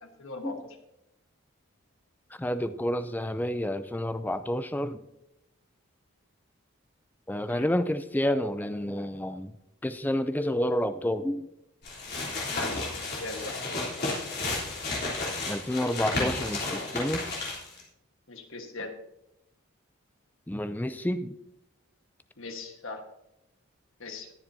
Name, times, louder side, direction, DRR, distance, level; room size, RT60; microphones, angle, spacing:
voice 1, 0.0-0.8 7.5-7.7 12.4-13.5 18.3-18.9 22.4-23.0 24.0-24.3, left 3 dB, 65° left, 4 dB, 1.4 m, -40 dB
voice 2, 2.4-5.0 7.3-9.5 9.8-11.5 15.5-17.2 20.5-21.3, left 1 dB, 10° left, 11 dB, 0.4 m, -29 dB
sound 1, 11.8-17.8, left 2 dB, 45° left, 3.4 m, -32 dB
20.0 x 7.2 x 2.7 m, 0.85 s
head